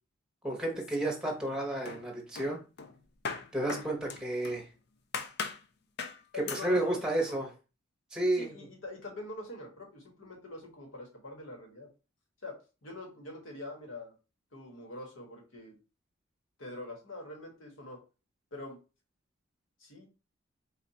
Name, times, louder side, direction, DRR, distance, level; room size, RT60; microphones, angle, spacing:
voice 1, 0.4-2.6 3.5-4.7 6.4-7.5 8.1-8.5, right 1 dB, 5° right, -1 dB, 1.0 m, -31 dB
sound 1, 0.7-1.5 1.9-4.7 5.1-5.6 6.0-6.2 6.5-6.7, left 5 dB, 50° left, 0.5 m, -40 dB
voice 2, 6.3-7.3 8.3-11.9 12.4-14.1 14.5-15.8 16.6-18.0 18.5-18.8 19.8-20.1, left 2 dB, 70° left, 1 dB, 1.5 m, -44 dB
4.2 x 2.4 x 4.1 m, 0.32 s
head